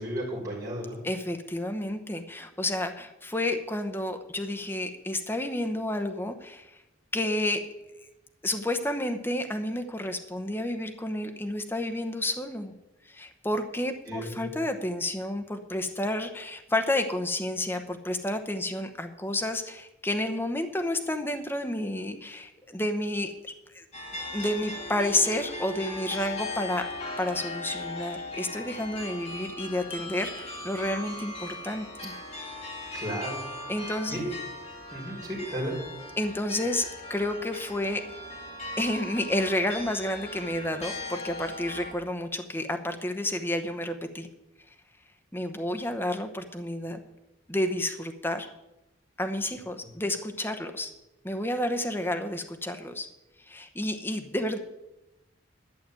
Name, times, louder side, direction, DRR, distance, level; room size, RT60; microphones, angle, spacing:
voice 1, 0.0-1.0 14.1-14.3 32.9-33.4 33.8-34.2 34.9-35.7, equal, 15° right, -9 dB, 4.3 m, -34 dB
voice 2, 1.0-6.7 7.1-7.6 8.4-12.7 13.0-23.8 24.3-26.8 27.2-32.1 32.8-32.9 33.7-34.3 36.2-38.0 38.8-44.3 45.3-47.0 47.5-48.5 49.2-50.9 51.2-53.1 53.5-54.6, left 1 dB, 10° left, 6 dB, 0.9 m, -30 dB
sound 1, 23.9-41.9, left 2 dB, 35° left, 2.6 m, -39 dB
11.5 x 6.0 x 9.0 m, 0.95 s
head